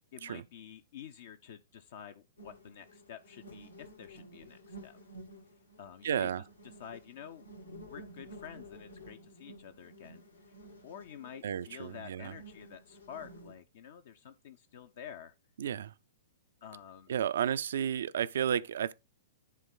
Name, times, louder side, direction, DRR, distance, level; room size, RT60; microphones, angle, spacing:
voice 1, 0.1-5.0 5.8-6.3 6.8-10.2 10.8-15.3 16.6-17.1, left 8 dB, 50° left, 0.6 m, -49 dB
sound 1, 2.4-13.6, right 1 dB, 75° left, 1.9 m, -52 dB
voice 2, 6.0-6.4 11.4-12.3 15.6-15.9 17.1-18.9, right 9 dB, 55° right, 0.4 m, -32 dB
10.5 x 3.6 x 3.9 m
figure-of-eight pair, 110°, 0 cm